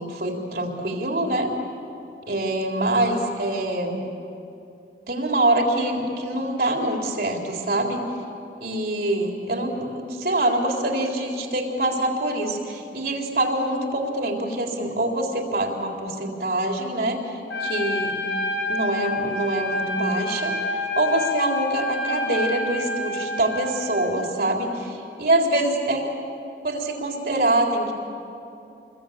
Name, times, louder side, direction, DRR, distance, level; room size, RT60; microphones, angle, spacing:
voice 1, 0.0-1.5 2.3-4.0 5.1-8.0 8.6-17.2 17.6-18.2 18.7-26.0 26.6-27.9, right 1 dB, 55° right, 0 dB, 3.9 m, -25 dB
Trumpet, 17.5-24.2, left 2 dB, 85° left, 5.6 m, -28 dB
29.0 x 22.5 x 8.7 m, 2.7 s
head